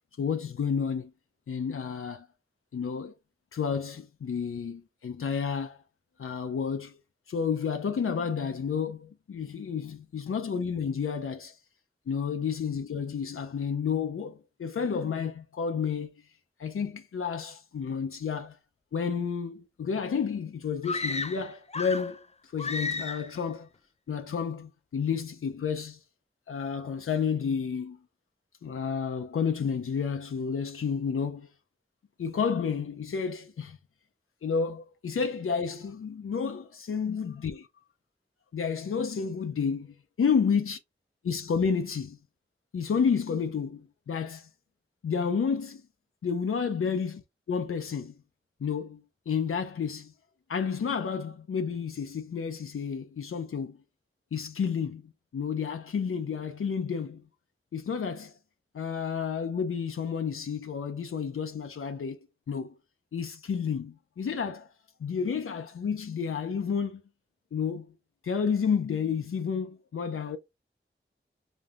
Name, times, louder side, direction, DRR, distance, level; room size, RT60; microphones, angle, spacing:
voice 1, 0.2-1.1 1.5-2.3 2.7-3.1 3.5-5.8 6.2-7.0 7.3-11.6 12.1-16.1 16.6-18.6 18.9-23.7 24.1-26.0 26.5-28.0 28.6-31.5 32.2-33.8 34.4-37.7 38.5-40.8 41.2-42.2 42.7-44.5 45.0-45.8 46.2-47.2 47.5-48.2 48.6-50.1 50.5-53.8 54.3-57.2 57.7-58.3 58.7-62.7 63.1-64.7 65.0-67.0 67.5-67.9 68.2-70.4, left 6 dB, 85° left, 0.5 m, -31 dB
sound 1, 20.8-22.2 22.6-23.4, left 3 dB, 30° left, 0.4 m, -33 dB
5.1 x 2.6 x 2.4 m
wide cardioid pair, 60°, 21 cm